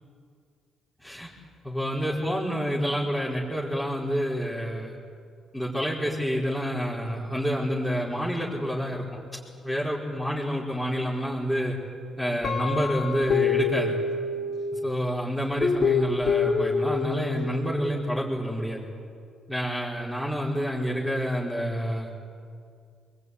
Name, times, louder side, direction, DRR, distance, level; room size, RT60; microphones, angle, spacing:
voice 1, 1.6-4.9 5.5-9.0 9.6-11.8 12.2-13.9 14.8-18.8 19.5-22.1, equal, 5° left, -8 dB, 5.1 m, -28 dB
Guitar, 12.4-14.9 15.6-17.5, left 5 dB, 55° left, 2.6 m, -26 dB
25.5 x 21.5 x 10.0 m, 2.2 s
cardioid pair, 90°, 0 cm